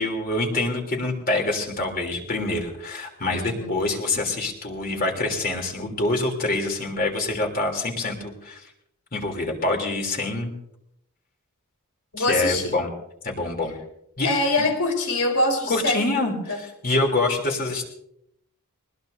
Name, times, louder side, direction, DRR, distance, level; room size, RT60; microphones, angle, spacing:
voice 1, 0.0-8.6 9.1-10.5 12.2-12.9 13.2-13.7 14.2-14.3 15.7-17.9, left 2 dB, 40° left, 2 dB, 3.2 m, -26 dB
voice 2, 3.3-3.8 12.1-12.8 14.2-16.6, left 2 dB, 85° left, 3 dB, 4.3 m, -24 dB
21.0 x 20.5 x 2.7 m, 0.76 s
head